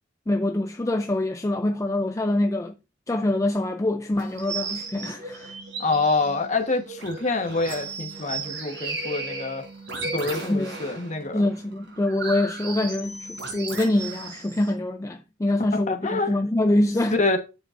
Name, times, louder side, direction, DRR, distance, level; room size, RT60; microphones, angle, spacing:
voice 1, 0.3-2.8 3.1-5.6 10.5-10.8 11.3-17.2, left 1 dB, 15° left, 0.4 m, -25 dB
sound 1, 4.2-14.7, right 3 dB, 70° right, 4.1 m, -35 dB
voice 2, 5.8-9.6 10.0-11.4 15.9-16.3 17.1-17.4, left 3 dB, 40° left, 1.2 m, -26 dB
9.2 x 7.6 x 2.5 m
head